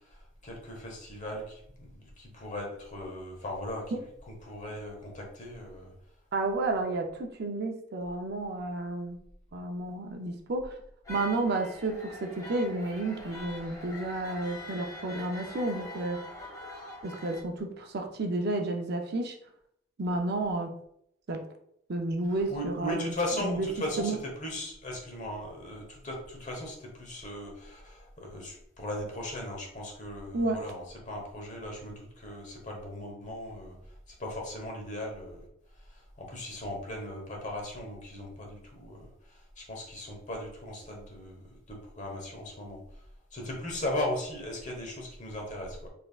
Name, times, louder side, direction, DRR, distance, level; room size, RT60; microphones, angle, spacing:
voice 1, 0.1-3.8 4.3-5.9 22.5-33.8 34.2-35.4 35.9-42.8 43.3-45.9, left 1 dB, 40° left, 1 dB, 1.0 m, -38 dB
voice 2, 6.3-9.2 9.5-10.8 11.1-16.2 17.0-19.4 20.0-20.7 21.3-21.4 21.9-23.1 23.4-23.7 24.0-24.2 30.3-30.7, right 2 dB, 55° right, 3 dB, 0.5 m, -31 dB
sound 1, 11.0-17.4, left 2 dB, 20° left, 1.4 m, -44 dB
4.2 x 3.5 x 2.4 m, 0.72 s
head